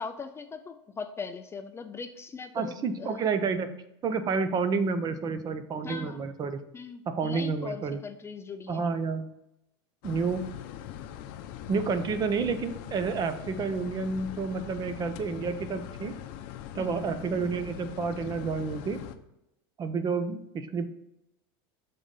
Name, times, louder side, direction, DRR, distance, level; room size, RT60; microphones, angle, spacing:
voice 1, 0.0-3.3 5.8-6.2 6.7-8.8 16.8-17.0, left 5 dB, 20° left, 8 dB, 0.4 m, -40 dB
voice 2, 2.5-3.7 4.0-6.6 7.1-8.0 8.7-9.3 10.0-10.5 11.7-16.1 16.7-19.0 19.8-20.9, right 5 dB, 30° right, 10 dB, 0.7 m, -30 dB
sound 1, 10.0-19.2, left 10 dB, 60° left, 0.6 m, -41 dB
6.9 x 3.8 x 5.4 m, 0.86 s
supercardioid pair, 120°, 13 cm